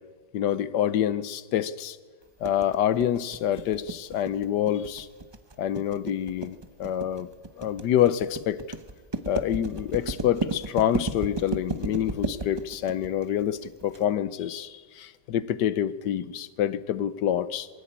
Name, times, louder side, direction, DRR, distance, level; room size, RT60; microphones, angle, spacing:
voice 1, 0.3-2.0 2.4-5.1 5.6-7.3 7.6-8.6 9.2-17.7, left 10 dB, 70° left, 16 dB, 1.3 m, -27 dB
sound 1, 2.4-14.0, right 2 dB, 25° right, 0.5 m, -33 dB
21.5 x 15.5 x 8.8 m, 1.5 s
omnidirectional pair, 2.0 m